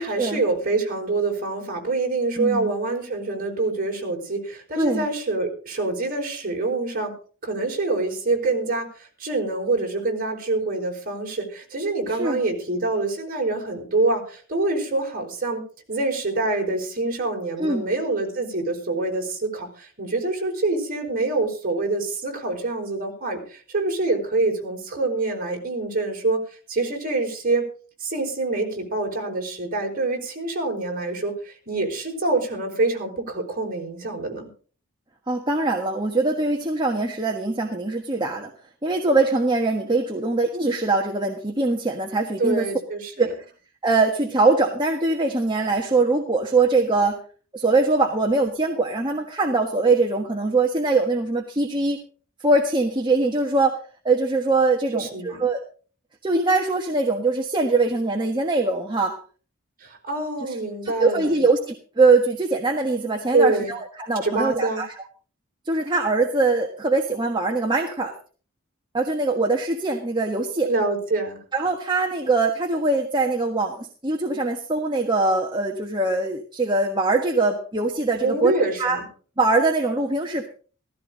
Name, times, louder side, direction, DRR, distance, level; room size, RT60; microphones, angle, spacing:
voice 1, 0.0-7.1 7.4-15.6 15.9-26.4 26.7-27.6 28.0-34.5 42.4-43.3 54.9-55.4 59.8-61.4 63.3-63.7 64.2-64.8 70.7-71.4 78.2-79.1, right 2 dB, 40° right, 1 dB, 4.7 m, -26 dB
voice 2, 2.4-2.7 4.8-5.1 12.1-12.4 17.6-17.9 35.3-38.5 38.8-42.7 43.2-43.5 43.8-47.2 47.5-52.0 52.4-53.8 54.0-55.6 56.2-59.2 60.5-60.6 60.8-64.9 65.7-68.1 68.9-70.7 71.5-78.5 78.8-79.0 79.4-80.5, right 3 dB, 20° right, 1 dB, 1.4 m, -22 dB
15.5 x 15.5 x 3.9 m, 0.40 s
head